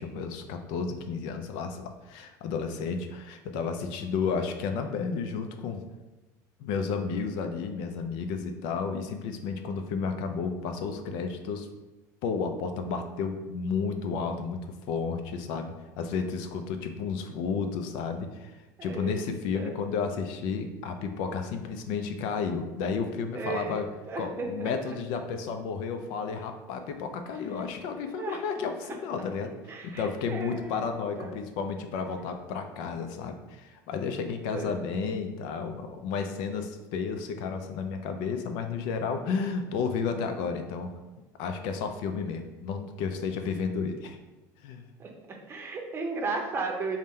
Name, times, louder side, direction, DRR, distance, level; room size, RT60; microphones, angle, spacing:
voice 1, 0.0-5.8 6.6-11.7 12.2-23.9 24.2-29.5 29.8-40.9 41.4-44.2 44.6-44.9, left 5 dB, 65° left, 6 dB, 0.4 m, -32 dB
voice 2, 18.8-19.3 19.5-19.8 23.3-24.9 28.2-28.4 28.8-28.9 29.7-30.9 31.2-31.3 34.5-34.7 45.0-45.1 45.5-47.0, right 4 dB, 30° right, 1 dB, 0.6 m, -35 dB
3.6 x 2.1 x 4.2 m, 1.1 s
supercardioid pair, 125°, 8 cm